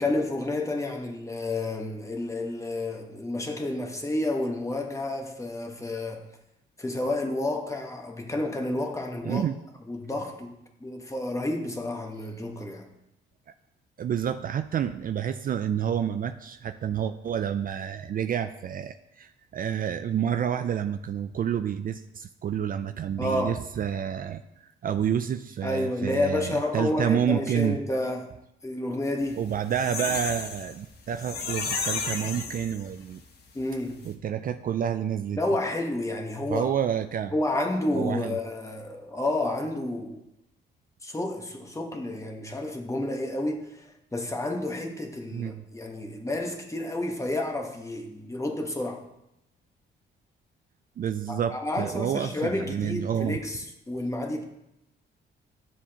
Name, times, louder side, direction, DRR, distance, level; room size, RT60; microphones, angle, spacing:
voice 1, 0.0-6.2 6.8-9.4 9.9-10.5 10.8-12.9 23.2-23.5 25.6-28.3 28.6-29.4 33.5-34.0 35.4-36.7 37.3-40.2 41.0-49.0 51.3-54.4, left 2 dB, 15° left, 2 dB, 1.3 m, -30 dB
voice 2, 9.2-9.6 14.0-24.4 24.8-27.8 29.4-33.2 34.0-35.4 36.5-37.3 37.9-38.4 45.3-45.6 51.0-53.4, right 9 dB, 45° right, 9 dB, 0.4 m, -29 dB
sound 1, 29.3-33.2 33.6-33.7 33.9-34.1, left 5 dB, 55° left, 1.2 m, -33 dB
10.0 x 7.2 x 2.9 m, 0.86 s
cardioid pair, 90°, 20 cm